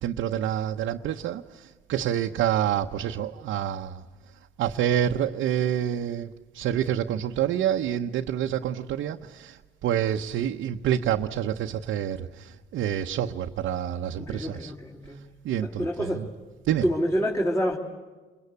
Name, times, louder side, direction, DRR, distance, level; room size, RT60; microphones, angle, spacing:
voice 1, 0.0-4.0 4.6-6.3 6.5-14.7 15.4-16.2 16.7-16.8, right 10 dB, 80° right, 0.9 m, -27 dB
voice 2, 14.2-15.3 15.6-16.3 16.8-17.8, equal, 15° left, 3.5 m, -27 dB
29.5 x 22.5 x 8.3 m
cardioid pair, 90°, 20 cm